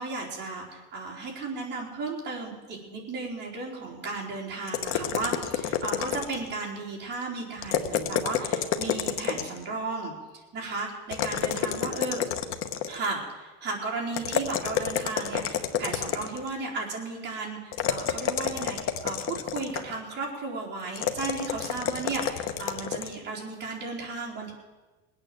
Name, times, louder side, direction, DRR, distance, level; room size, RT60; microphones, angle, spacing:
voice 1, 0.0-10.1 10.5-12.2 12.9-24.5, right 3 dB, 30° right, -2 dB, 3.8 m, -35 dB
sound 1, 4.7-6.6 7.6-9.6 11.1-13.1 14.1-16.5 17.7-19.9 20.9-23.2, left 8 dB, 40° left, 1.0 m, -29 dB
20.5 x 9.1 x 7.6 m, 1.2 s
cardioid pair, 160°, 33 cm